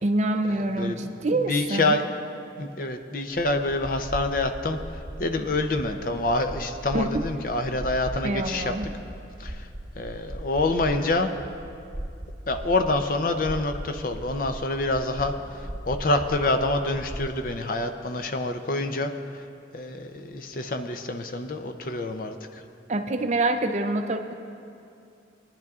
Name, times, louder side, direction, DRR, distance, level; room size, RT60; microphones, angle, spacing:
voice 1, 0.0-2.0 6.9-7.2 8.2-8.9 22.9-24.3, right 2 dB, 35° right, 6 dB, 0.5 m, -26 dB
voice 2, 0.8-2.0 2.6-4.8 5.2-8.7 9.4-9.7 10.0-11.3 12.5-19.4 19.7-22.6, left 2 dB, 45° left, 7 dB, 0.6 m, -27 dB
sound 1, 3.4-17.4, equal, 10° right, 0.9 m, -38 dB
21.0 x 10.5 x 2.4 m, 2.5 s
head